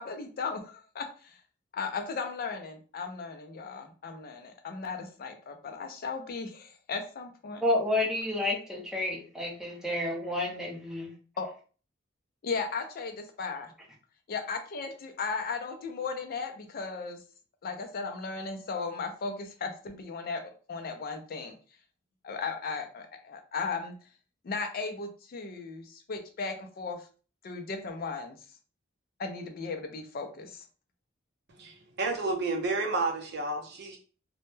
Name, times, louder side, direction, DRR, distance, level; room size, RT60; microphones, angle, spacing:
voice 1, 0.0-1.4 1.7-7.6 11.4-11.5 12.4-13.7 14.3-17.2 17.6-20.4 20.7-21.5 22.2-23.9 24.4-27.0 27.4-28.3 29.2-30.6, left 4 dB, 50° left, 0.4 m, -36 dB
voice 2, 7.6-11.1, left 1 dB, 5° right, 0.6 m, -30 dB
voice 3, 31.6-34.0, right 3 dB, 60° right, 0.6 m, -31 dB
2.1 x 2.1 x 3.0 m
head